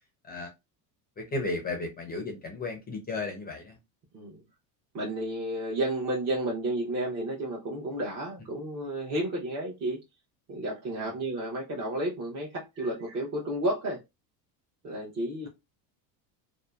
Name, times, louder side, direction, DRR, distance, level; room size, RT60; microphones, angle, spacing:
voice 1, 1.2-3.8 11.0-11.1, left 2 dB, 20° left, 0.4 m, -34 dB
voice 2, 4.9-10.0 10.5-14.0 14.8-15.5, right 1 dB, 35° right, 0.8 m, -32 dB
2.7 x 2.0 x 2.3 m
supercardioid pair, 120°, 48 cm